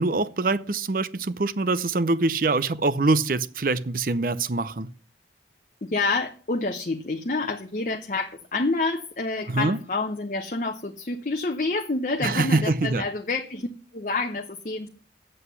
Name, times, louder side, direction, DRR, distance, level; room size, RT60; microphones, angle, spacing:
voice 1, 0.0-4.9 9.5-9.8 12.2-13.0, right 3 dB, 50° right, 0.6 m, -24 dB
voice 2, 5.8-13.7 13.9-14.9, left 3 dB, 45° left, 0.8 m, -28 dB
7.9 x 7.7 x 8.1 m
head